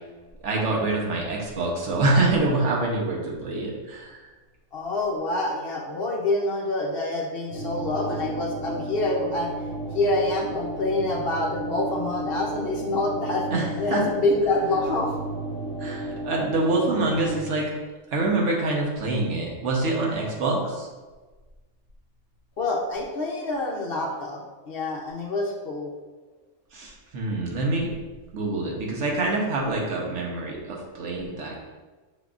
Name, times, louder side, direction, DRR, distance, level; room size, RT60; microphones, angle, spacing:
voice 1, 0.4-4.3 13.5-14.0 15.8-17.7 18.1-20.9 26.7-27.9 28.3-31.7, right 2 dB, 75° right, -2 dB, 1.2 m, -26 dB
voice 2, 4.7-9.5 9.9-13.5 13.8-15.1 22.6-25.9, left 2 dB, 60° left, 0 dB, 0.7 m, -26 dB
sound 1, 7.5-17.4, right 1 dB, 55° right, 0.7 m, -33 dB
5.8 x 3.7 x 2.4 m, 1.3 s
omnidirectional pair, 1.3 m